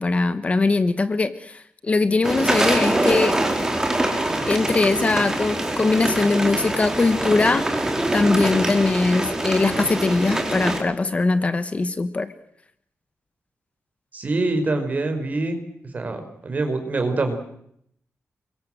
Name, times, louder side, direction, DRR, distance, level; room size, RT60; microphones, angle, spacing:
voice 1, 0.0-3.4 4.5-12.3, left 3 dB, 30° left, 12 dB, 1.1 m, -21 dB
sound 1, 2.2-10.8, right 1 dB, 15° right, 4.1 m, -24 dB
voice 2, 14.1-15.6 15.9-17.3, right 2 dB, 35° right, 6 dB, 5.2 m, -25 dB
28.5 x 23.0 x 7.8 m, 0.72 s
wide cardioid pair, 160°, 4 cm